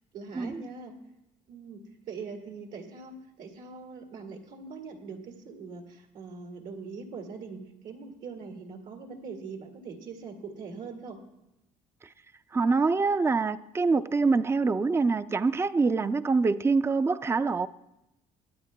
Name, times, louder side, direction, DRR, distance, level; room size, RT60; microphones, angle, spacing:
voice 1, 0.1-1.0 1.5-11.2, right 4 dB, 80° right, 2.0 m, -42 dB
voice 2, 12.5-17.7, right 4 dB, 15° right, 0.4 m, -25 dB
23.5 x 9.5 x 2.2 m
cardioid pair, 100°, 15 cm